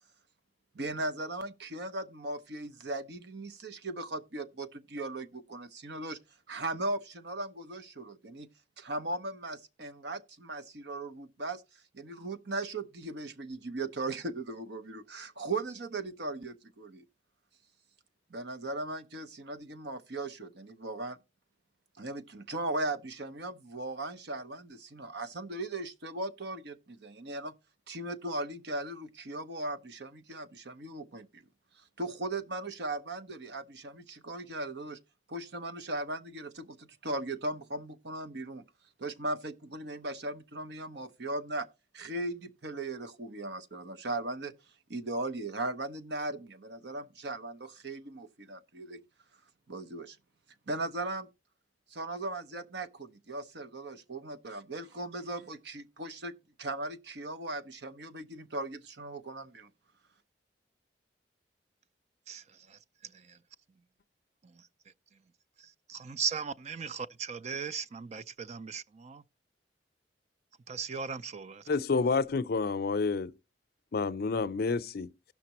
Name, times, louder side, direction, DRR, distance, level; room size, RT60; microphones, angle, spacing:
voice 1, 0.7-6.2 6.5-8.5 8.8-11.6 11.9-17.0 18.3-21.2 22.0-27.5 27.9-31.4 32.0-35.0 35.3-38.6 39.0-41.7 41.9-44.5 44.9-49.0 49.7-50.2 50.7-51.3 51.9-59.7, right 2 dB, 65° right, 0.9 m, -38 dB
voice 2, 65.9-69.2 70.7-71.6, right 6 dB, 40° right, 0.4 m, -37 dB
voice 3, 71.7-73.3 73.9-75.3, left 4 dB, 60° left, 0.5 m, -29 dB
17.0 x 5.9 x 3.0 m
head